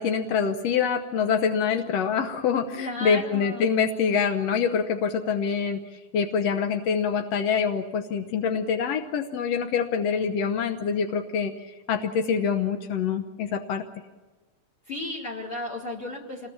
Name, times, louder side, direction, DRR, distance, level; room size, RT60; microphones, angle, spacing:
voice 1, 0.0-13.8, left 6 dB, 70° left, 6 dB, 1.5 m, -25 dB
voice 2, 2.8-3.7 14.9-16.5, left 1 dB, 45° left, 1 dB, 2.5 m, -34 dB
27.5 x 20.5 x 7.2 m, 1.2 s
omnidirectional pair, 4.2 m